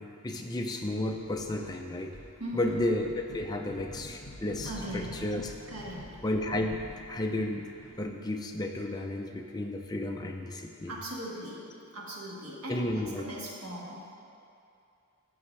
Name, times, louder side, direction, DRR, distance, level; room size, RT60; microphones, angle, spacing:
voice 1, 0.0-2.1 2.5-5.5 6.2-6.8 7.1-7.6 8.0-10.9 12.7-13.3, left 1 dB, 20° left, 2 dB, 0.5 m, -32 dB
sound 1, 1.1-1.8 2.1-8.2, equal, 60° left, 2.0 m, -48 dB
voice 2, 2.4-2.8 3.6-3.9 4.6-5.3 5.7-6.2 10.9-14.1, right 1 dB, 75° right, -4 dB, 1.7 m, -39 dB
14.5 x 5.7 x 3.3 m, 2.6 s
head